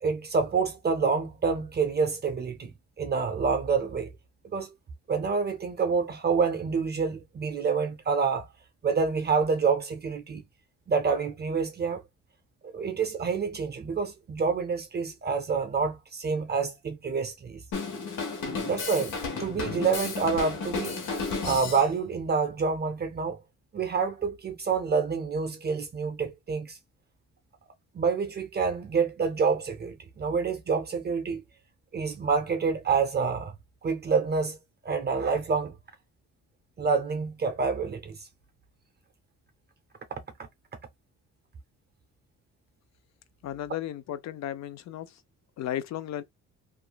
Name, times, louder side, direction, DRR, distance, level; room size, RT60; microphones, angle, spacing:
voice 1, 0.0-4.1 4.5-4.7 5.1-8.5 8.8-10.4 10.9-12.0 12.7-17.6 18.7-19.1 19.4-21.0 21.4-23.4 23.7-26.8 27.9-31.4 31.9-33.5 33.8-34.6 34.8-35.7 36.8-38.2, right 5 dB, 35° right, 0.5 m, -27 dB
Drum kit, 17.7-21.9, left 4 dB, 80° left, 1.1 m, -33 dB
voice 2, 43.4-45.1 45.6-46.2, left 11 dB, 65° left, 0.5 m, -34 dB
2.9 x 2.4 x 2.2 m
cardioid pair, 90°, 30 cm